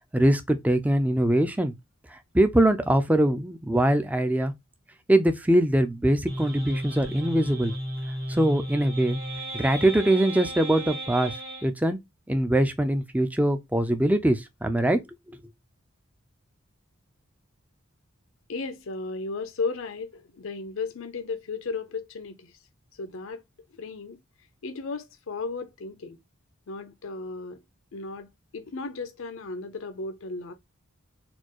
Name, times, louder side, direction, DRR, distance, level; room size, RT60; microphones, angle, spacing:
voice 1, 0.1-1.7 2.1-4.5 5.1-7.7 8.3-9.2 9.5-11.3 11.6-12.0 12.3-15.0, right 1 dB, 5° right, 0.4 m, -22 dB
sound 1, 6.3-11.7, equal, 75° right, 1.7 m, -34 dB
voice 2, 18.5-22.6 23.0-23.4 23.7-24.2 24.6-26.2 26.7-27.6 27.9-30.5, left 4 dB, 70° left, 0.5 m, -35 dB
4.2 x 2.3 x 2.9 m
head